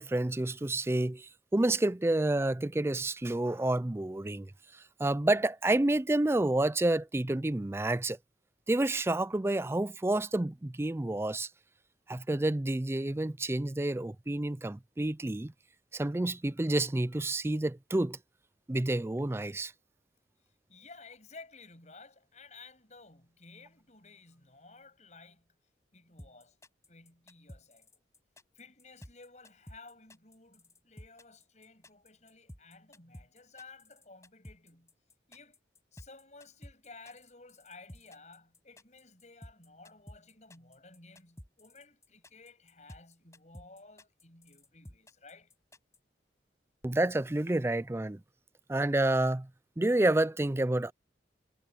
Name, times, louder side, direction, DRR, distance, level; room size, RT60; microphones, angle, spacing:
voice 1, 0.0-4.5 5.0-8.2 8.7-11.5 12.1-15.5 15.9-18.2 18.7-19.7 46.8-48.2 48.7-49.5 49.8-50.9, right 1 dB, 15° right, 0.4 m, -29 dB
voice 2, 20.7-25.5 25.9-26.6 26.9-28.0 28.5-34.9 35.3-35.6 35.9-45.5, left 3 dB, 40° left, 8.0 m, -54 dB
sound 1, 26.2-46.0, equal, 15° left, 6.9 m, -52 dB
head